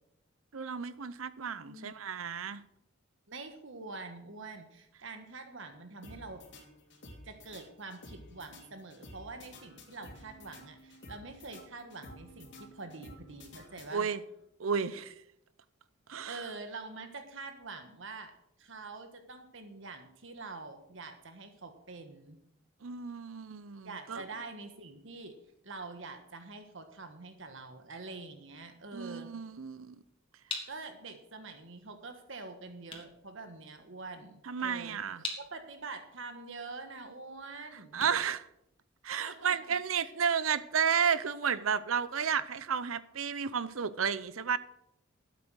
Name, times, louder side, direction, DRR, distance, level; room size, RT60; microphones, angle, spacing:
voice 1, 0.5-2.6 13.9-14.2 14.6-15.1 16.1-16.4 22.8-24.2 28.9-30.0 34.5-35.2 37.9-38.5 39.0-44.6, right 7 dB, 85° right, 0.7 m, -32 dB
voice 2, 3.3-6.4 7.2-14.1 16.2-18.3 18.6-22.4 23.8-25.3 25.6-29.3 30.7-35.0 35.5-38.0 39.2-39.6 40.0-40.1, right 3 dB, 65° right, 1.5 m, -45 dB
sound 1, 6.0-14.4, left 1 dB, 60° left, 2.8 m, -52 dB
sound 2, 30.5-39.3, left 4 dB, 25° left, 2.6 m, -46 dB
12.5 x 8.5 x 6.3 m
head